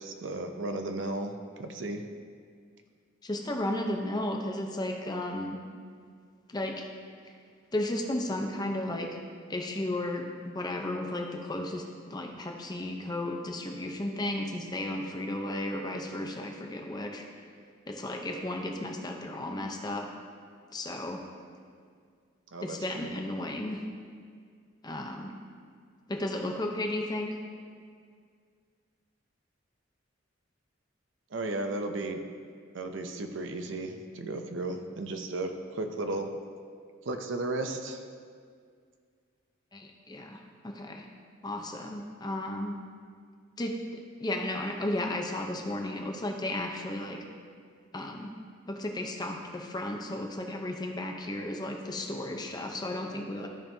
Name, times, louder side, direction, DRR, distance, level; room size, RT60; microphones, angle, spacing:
voice 1, 0.0-2.0 22.5-23.1 31.3-32.2 32.7-36.3 37.1-38.0, right 2 dB, 65° right, 6 dB, 0.6 m, -34 dB
voice 2, 3.2-5.6 6.5-6.9 7.2-7.3 7.7-9.2 9.5-17.4 17.9-20.1 20.7-21.2 22.6-23.8 24.8-25.3 26.1-27.4 39.7-41.1 41.4-42.8 43.6-47.2 47.9-48.3 48.7-53.5, left 1 dB, 20° left, 2 dB, 0.7 m, -34 dB
13.5 x 5.3 x 2.7 m, 2.1 s
head